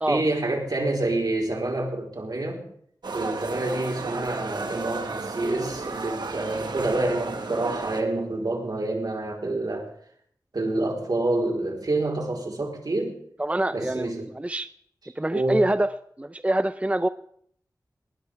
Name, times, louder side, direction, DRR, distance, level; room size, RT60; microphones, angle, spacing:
voice 1, 0.1-2.6 3.1-9.9 10.5-13.2 13.7-14.3 15.3-15.6, right 2 dB, 65° right, 0 dB, 4.0 m, -27 dB
sound 1, 3.0-8.0, right 3 dB, 90° right, 1.6 m, -33 dB
voice 2, 13.4-14.7 15.2-15.9 16.2-17.1, right 1 dB, 20° right, 11 dB, 0.6 m, -25 dB
20.0 x 19.0 x 3.5 m, 0.64 s
wide cardioid pair, 50°, 7 cm